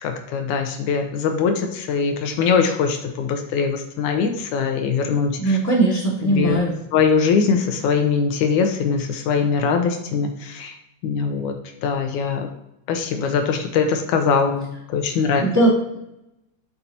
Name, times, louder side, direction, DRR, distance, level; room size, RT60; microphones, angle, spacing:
voice 1, 0.0-5.6 6.2-6.6 6.9-10.8 11.0-11.5 11.8-12.5 12.9-15.4, left 5 dB, 85° left, 5 dB, 2.4 m, -22 dB
voice 2, 5.4-6.7 15.4-16.0, right 2 dB, 5° right, -7 dB, 2.2 m, -19 dB
11.5 x 5.4 x 2.9 m, 0.85 s
omnidirectional pair, 3.3 m